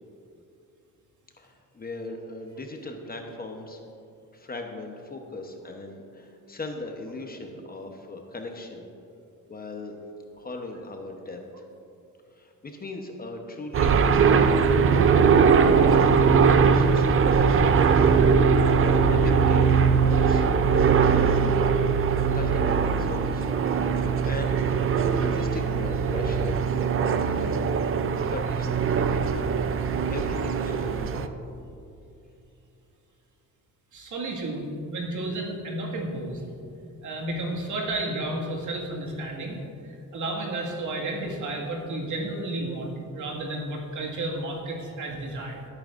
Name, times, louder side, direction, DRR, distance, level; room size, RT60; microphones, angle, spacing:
voice 1, 1.4-3.8 4.3-8.8 9.5-10.0 10.4-11.4 12.3-17.6 19.1-21.4 22.3-23.7 24.2-24.6 25.1-26.7 27.0-27.5 28.3-31.3, left 2 dB, 25° left, 3 dB, 0.9 m, -39 dB
sound 1, 13.7-31.3, right 6 dB, 40° right, 0.5 m, -21 dB
voice 2, 33.9-36.4 37.0-39.6 39.8-45.7, right 1 dB, 60° right, -1 dB, 2.0 m, -32 dB
17.0 x 8.8 x 2.5 m, 2.6 s
cardioid pair, 125°, 34 cm